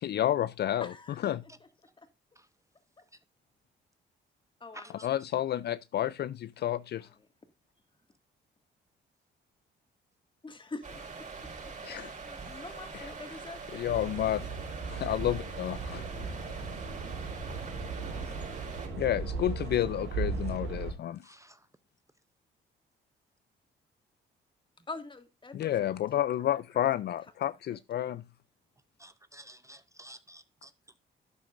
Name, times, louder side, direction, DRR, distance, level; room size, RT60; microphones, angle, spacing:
voice 1, 0.0-0.9 1.2-1.4 5.0-7.1 11.8-12.1 12.9-13.0 13.7-14.5 14.8-16.1 19.0-21.3 25.5-28.2, left 12 dB, 55° left, 0.5 m, -30 dB
voice 2, 0.8-1.3 2.0-2.1 3.0-3.1 4.6-5.2 6.6-7.1 10.4-11.0 11.8-13.8 18.2-18.4 19.6-20.0 24.9-26.9 27.7-27.8, left 3 dB, 25° left, 2.0 m, -46 dB
sound 1, 10.8-18.9, right 4 dB, 40° right, 4.7 m, -43 dB
sound 2, 13.9-20.9, right 4 dB, 90° right, 4.5 m, -37 dB
voice 3, 29.0-30.7, right 1 dB, 15° right, 0.6 m, -52 dB
12.5 x 9.0 x 2.5 m
cardioid pair, 90°, 20 cm